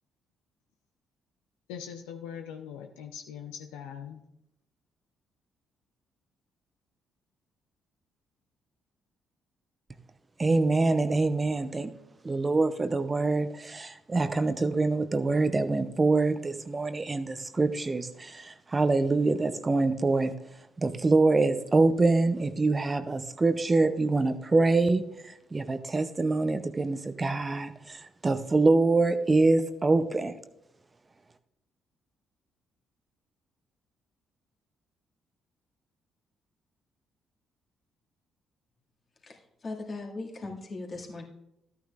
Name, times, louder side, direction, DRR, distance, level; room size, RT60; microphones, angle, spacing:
voice 1, 1.7-4.2, left 8 dB, 75° left, 5 dB, 0.6 m, -41 dB
voice 2, 10.4-12.0 12.2-20.3 20.8-30.4, right 3 dB, 30° right, 11 dB, 0.7 m, -25 dB
voice 3, 39.2-41.2, left 2 dB, 40° left, 0 dB, 2.1 m, -39 dB
13.5 x 9.3 x 2.5 m, 0.84 s
hypercardioid pair, 45°, 0 cm